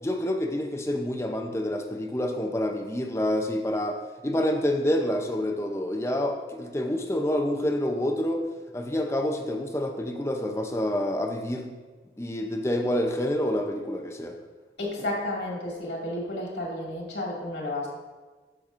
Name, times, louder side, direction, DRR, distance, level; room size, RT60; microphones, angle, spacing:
voice 1, 0.0-8.5 8.7-11.7 12.2-14.4, left 1 dB, 15° left, 3 dB, 0.6 m, -28 dB
voice 2, 14.8-17.9, left 1 dB, 80° left, -3 dB, 2.3 m, -32 dB
12.5 x 5.9 x 2.6 m, 1.3 s
head